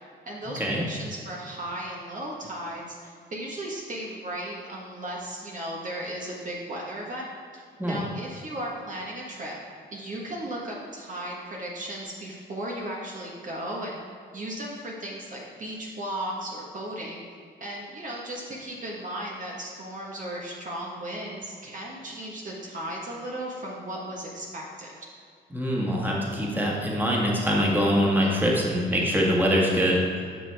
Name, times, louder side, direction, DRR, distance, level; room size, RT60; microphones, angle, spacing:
voice 1, 0.2-7.3 7.5-9.6 9.9-14.0 14.3-17.2 17.6-24.9 28.2-28.7, right 1 dB, 40° right, -3 dB, 1.4 m, -36 dB
voice 2, 25.5-30.0, equal, 10° right, -3 dB, 1.7 m, -23 dB
10.0 x 6.1 x 3.5 m, 2.3 s
cardioid pair, 90°, 20 cm